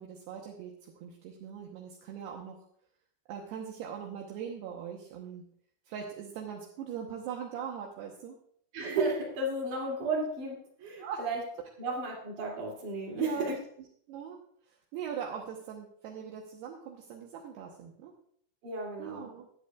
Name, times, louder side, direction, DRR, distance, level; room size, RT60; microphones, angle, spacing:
voice 1, 0.0-2.7 3.3-5.5 5.9-8.4 11.0-11.2 13.2-13.6 14.1-14.4 14.7-18.1 19.0-19.5, right 7 dB, 75° right, 0 dB, 2.6 m, -41 dB
voice 2, 8.7-11.4 11.8-13.6 18.6-19.3, right 2 dB, 45° right, -2 dB, 3.8 m, -33 dB
22.0 x 8.1 x 2.4 m, 0.64 s
omnidirectional pair, 5.8 m